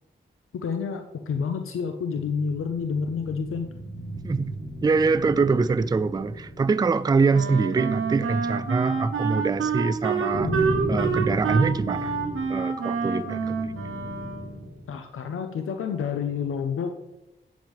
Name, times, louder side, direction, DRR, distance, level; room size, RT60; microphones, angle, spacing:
voice 1, 0.5-3.7 14.9-16.9, left 6 dB, 80° left, 6 dB, 0.6 m, -29 dB
sound 1, 2.4-14.9, equal, 45° left, 3.0 m, -35 dB
voice 2, 4.2-4.5 4.8-12.2 12.5-13.6, right 4 dB, 20° right, 13 dB, 0.3 m, -24 dB
Wind instrument woodwind instrument, 7.3-14.7, right 5 dB, 85° right, 1.0 m, -28 dB
8.8 x 7.2 x 3.1 m, 0.91 s
cardioid pair, 55°, 21 cm